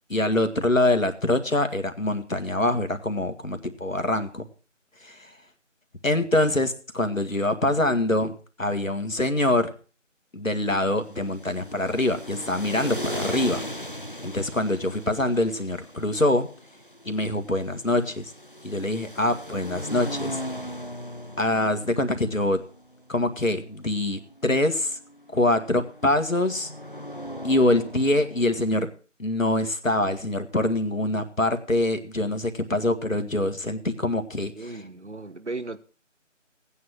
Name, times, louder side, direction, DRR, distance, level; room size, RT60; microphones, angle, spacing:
voice 1, 0.1-4.5 5.0-5.3 6.0-8.3 8.6-9.7 10.3-13.6 14.2-16.5 17.1-18.3 18.6-20.4 21.4-22.6 23.1-25.0 25.3-26.7 27.4-28.9 29.2-34.8, left 1 dB, 90° left, 8 dB, 2.0 m, -24 dB
sound 1, 10.9-28.8, equal, 45° left, 0.6 m, -38 dB
voice 2, 34.6-35.8, right 3 dB, 60° right, 14 dB, 1.3 m, -35 dB
17.0 x 9.4 x 4.4 m, 0.38 s
figure-of-eight pair, 170°, 38 cm